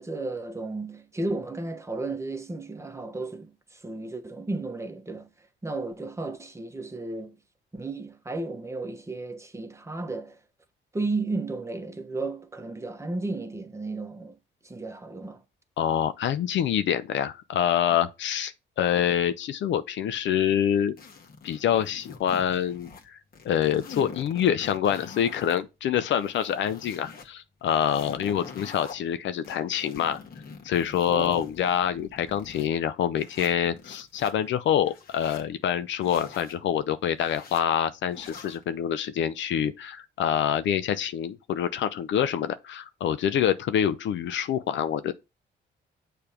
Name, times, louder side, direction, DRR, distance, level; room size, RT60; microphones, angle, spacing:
voice 1, 0.0-5.3 5.6-7.4 7.7-10.4 10.9-14.4 14.6-15.4 31.0-31.4, right 2 dB, 15° right, 1.1 m, -33 dB
voice 2, 15.8-21.0 21.4-23.2 23.4-30.2 30.6-45.1, left 9 dB, 70° left, 0.6 m, -26 dB
sound 1, 21.0-23.1 23.3-25.6 26.0-27.3 27.7-28.9 29.4-32.7 33.2-34.3 34.8-35.5 36.0-36.6 37.2-37.6 38.1-38.6, left 5 dB, 50° left, 1.6 m, -45 dB
6.8 x 3.4 x 5.8 m
cardioid pair, 90°, 20 cm